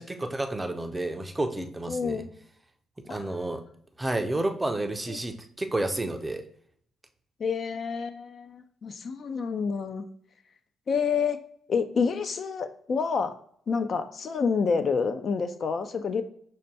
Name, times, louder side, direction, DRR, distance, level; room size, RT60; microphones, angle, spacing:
voice 1, 0.0-2.2 3.0-3.6 4.0-6.4, right 2 dB, 15° right, 6 dB, 0.4 m, -30 dB
voice 2, 1.9-2.3 3.1-3.3 5.1-5.2 7.4-10.0 10.9-11.4 11.7-13.3 13.7-16.2, left 5 dB, 50° left, 9 dB, 0.3 m, -28 dB
6.3 x 2.2 x 2.7 m, 0.64 s
cardioid pair, 90°, 0 cm